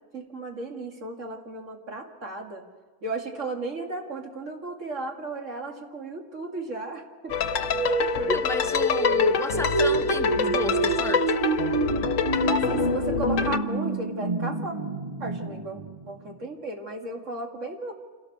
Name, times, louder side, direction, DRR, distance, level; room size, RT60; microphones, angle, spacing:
voice 1, 0.1-2.6 3.0-7.4 8.0-8.2 12.5-14.7 15.2-15.8 16.1-17.9, right 2 dB, 75° right, 2 dB, 2.7 m, -35 dB
sound 1, 7.3-13.6, left 7 dB, 85° left, 1.2 m, -27 dB
sound 2, 7.4-16.4, right 2 dB, 35° right, 0.9 m, -27 dB
voice 2, 8.3-11.4, left 1 dB, 5° left, 7 dB, 0.6 m, -32 dB
27.0 x 17.0 x 6.6 m, 1.4 s
omnidirectional pair, 1.3 m